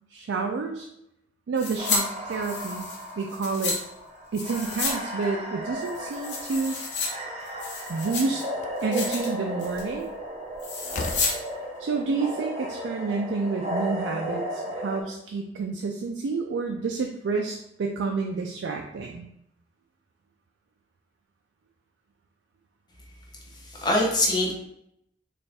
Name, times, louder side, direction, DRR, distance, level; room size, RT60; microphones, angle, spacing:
voice 1, 0.1-0.9 1.5-2.9 3.2-3.8 4.3-6.8 7.9-8.4 8.8-10.1 11.8-19.3, right 4 dB, 85° right, 3 dB, 0.4 m, -29 dB
sound 1, 1.6-2.0 2.3-3.8 4.3-5.0 5.2-5.3 5.8-7.1 7.5-8.4 8.8-9.3 9.6-9.9 10.6-11.3 11.6-11.7, left 4 dB, 75° left, 1.0 m, -31 dB
sound 2, 1.8-15.0, equal, 35° right, 0.6 m, -35 dB
Slam, 7.9-8.0 8.5-8.9 10.4-10.5 10.9-11.4, left 3 dB, 40° left, 0.3 m, -35 dB
voice 2, 23.5-24.5, left 1 dB, 20° left, -2 dB, 0.8 m, -24 dB
4.1 x 2.5 x 3.4 m, 0.78 s
head